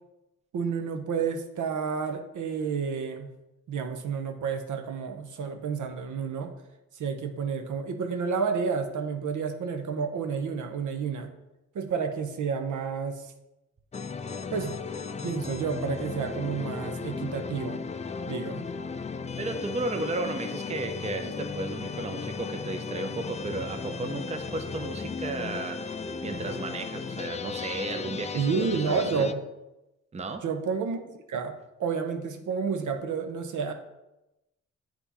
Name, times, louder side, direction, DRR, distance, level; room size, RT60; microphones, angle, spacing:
voice 1, 0.5-3.3 3.7-6.5 6.9-11.3 11.7-13.3 14.5-14.8 15.2-17.8 18.3-18.7 28.3-29.4 30.4-31.0 31.3-33.7, right 5 dB, 70° right, 6 dB, 0.7 m, -30 dB
sound 1, 13.9-29.3, left 5 dB, 20° left, 0.4 m, -35 dB
voice 2, 19.4-25.8 26.2-28.5 28.7-29.0 30.1-30.4, right 3 dB, 20° right, 6 dB, 0.6 m, -34 dB
7.8 x 2.9 x 4.0 m, 0.96 s
cardioid pair, 60°, 32 cm